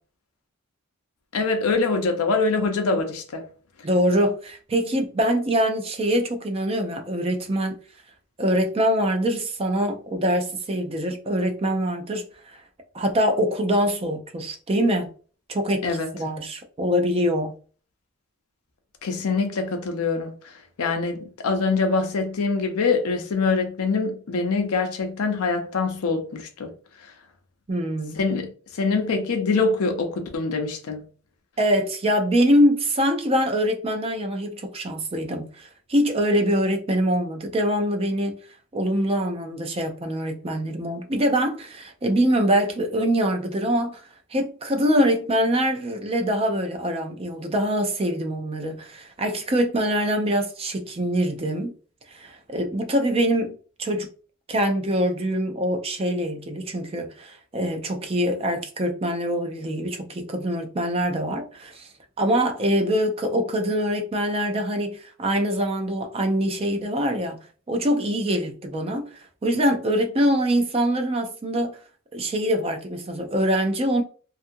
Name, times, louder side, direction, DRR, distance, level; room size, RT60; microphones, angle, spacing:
voice 1, 1.3-3.4 15.8-16.1 19.0-26.7 28.2-31.0, left 4 dB, 85° left, 0.6 m, -24 dB
voice 2, 3.8-7.7 8.4-12.6 12.9-15.1 15.5-15.9 16.1-17.5 27.7-28.2 31.6-38.4 38.7-44.0 44.3-51.7 52.1-54.1 54.5-61.9 62.2-67.4 67.7-71.8 72.1-74.0, equal, 25° right, 0.4 m, -24 dB
2.6 x 2.4 x 2.6 m
head